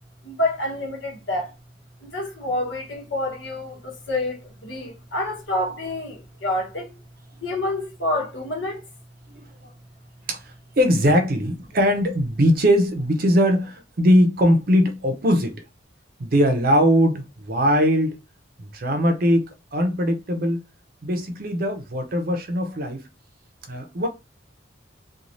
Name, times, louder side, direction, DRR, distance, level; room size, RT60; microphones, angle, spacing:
voice 1, 0.2-1.5 2.0-6.9 7.4-8.8, left 1 dB, 75° left, 1.1 m, -28 dB
voice 2, 10.3-15.6 16.2-18.2 18.6-19.4 19.7-20.6 21.0-23.0 23.7-24.1, equal, 50° right, 0.6 m, -20 dB
3.1 x 2.3 x 2.5 m
head